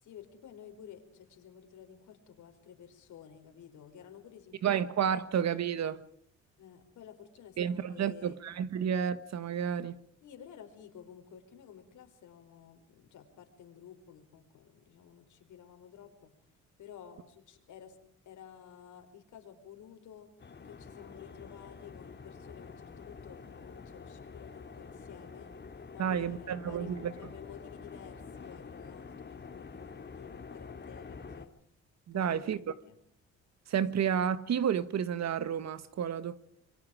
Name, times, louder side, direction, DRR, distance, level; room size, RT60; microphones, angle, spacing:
voice 1, 0.0-4.8 6.6-8.4 10.2-16.3 16.8-18.0 18.2-20.3 20.6-25.5 25.9-31.5 32.1-33.0, left 9 dB, 75° left, 4.7 m, -52 dB
voice 2, 4.6-6.1 7.6-9.9 26.0-27.1 32.1-32.6 33.7-36.4, right 8 dB, 60° right, 1.6 m, -31 dB
sound 1, 20.4-31.5, left 5 dB, 35° left, 2.6 m, -47 dB
27.5 x 23.5 x 5.0 m
cardioid pair, 90°, 30 cm